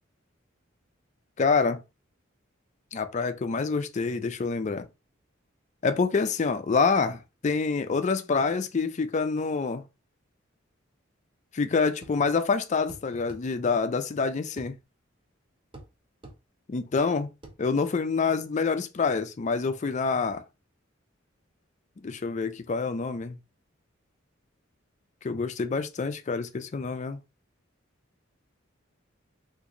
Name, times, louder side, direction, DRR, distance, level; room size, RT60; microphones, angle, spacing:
voice 1, 1.4-1.8 2.9-4.9 5.8-9.8 11.5-14.8 16.7-17.3 17.6-20.4 22.0-23.4 25.2-27.2, left 4 dB, 35° left, 0.4 m, -27 dB
sound 1, 12.0-12.2 12.9-13.5 14.6-14.7 15.7-15.9 16.2-16.4 17.4-17.6, right 2 dB, 25° right, 0.6 m, -45 dB
3.0 x 2.5 x 3.7 m
head